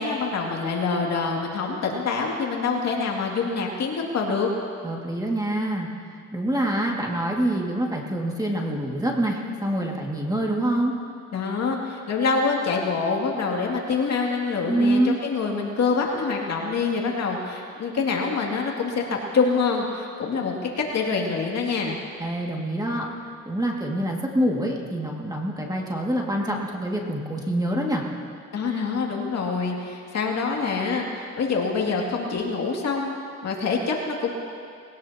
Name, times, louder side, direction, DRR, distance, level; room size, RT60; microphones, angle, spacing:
voice 1, 0.0-4.5 11.3-19.0 19.3-22.0 28.5-33.1 33.4-34.3, left 4 dB, 60° left, -1 dB, 2.5 m, -25 dB
voice 2, 4.8-5.9 6.3-11.0 14.7-15.2 22.2-28.0, right 1 dB, 10° right, -1 dB, 2.1 m, -26 dB
20.5 x 18.0 x 2.9 m, 2.3 s
cardioid pair, 90°, 30 cm